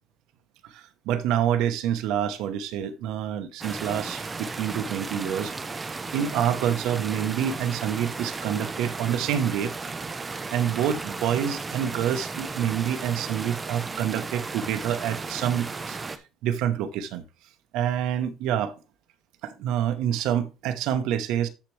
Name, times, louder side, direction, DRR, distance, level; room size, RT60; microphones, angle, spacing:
voice 1, 0.6-5.5 6.1-9.7 10.5-16.0 16.4-17.2 17.7-18.8 19.4-21.5, right 9 dB, 80° right, 1.0 m, -27 dB
sound 1, 3.6-16.2, right 4 dB, 20° right, 0.8 m, -35 dB
13.0 x 4.5 x 3.3 m
cardioid pair, 145°, 0 cm